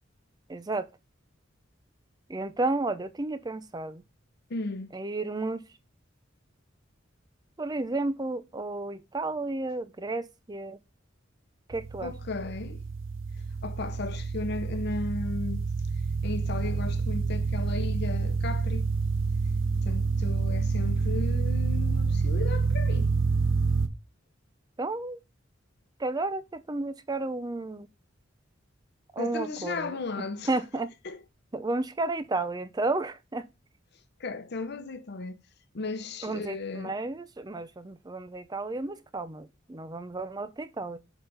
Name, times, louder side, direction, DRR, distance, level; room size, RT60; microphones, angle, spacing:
voice 1, 0.5-0.9 2.3-4.0 4.9-5.6 7.6-10.8 11.7-12.1 24.8-25.2 26.0-27.9 29.1-30.9 31.5-33.5 36.2-41.0, right 2 dB, 20° right, 0.5 m, -32 dB
voice 2, 4.5-4.9 12.0-12.8 13.6-15.7 16.2-18.9 19.8-23.1 29.2-30.5 31.0-31.2 34.2-35.4 35.7-37.0, left 3 dB, 55° left, 0.8 m, -35 dB
sound 1, 11.7-23.9, right 4 dB, 75° right, 0.8 m, -28 dB
6.6 x 4.0 x 5.4 m
head